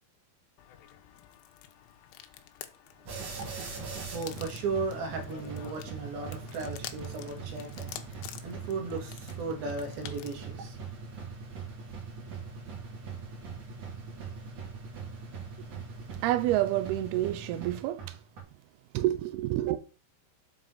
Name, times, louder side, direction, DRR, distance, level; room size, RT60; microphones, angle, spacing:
sound 1, 0.6-10.5, left 12 dB, 85° left, 3.2 m, -49 dB
sound 2, 3.1-18.4, right 5 dB, 45° right, 3.1 m, -41 dB
voice 1, 3.3-10.8, right 3 dB, 60° right, 3.4 m, -36 dB
voice 2, 16.2-18.2 18.9-19.8, right 14 dB, 85° right, 2.3 m, -28 dB
7.7 x 4.7 x 5.6 m
omnidirectional pair, 5.2 m